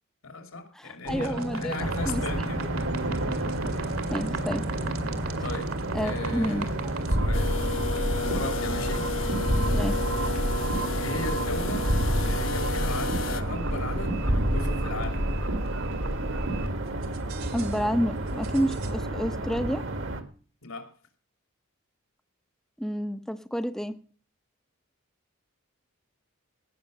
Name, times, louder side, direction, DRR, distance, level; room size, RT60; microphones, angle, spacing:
voice 1, 0.2-2.6 5.4-5.7 6.0-6.7 7.1-7.5 8.1-9.1 10.9-15.2 20.6-20.9, left 2 dB, 80° left, 5 dB, 2.9 m, -37 dB
voice 2, 0.7-2.2 4.1-4.6 5.9-6.9 9.7-10.0 17.5-19.9 22.8-23.9, equal, ahead, 8 dB, 0.6 m, -29 dB
sound 1, 1.0-16.7 17.0-17.8 18.4-18.9, right 1 dB, 85° right, 2.3 m, -30 dB
sound 2, 1.8-20.2, right 2 dB, 65° right, 1.7 m, -33 dB
sound 3, 7.3-13.4, left 4 dB, 65° left, 1.1 m, -33 dB
17.5 x 6.6 x 6.5 m, 0.40 s
head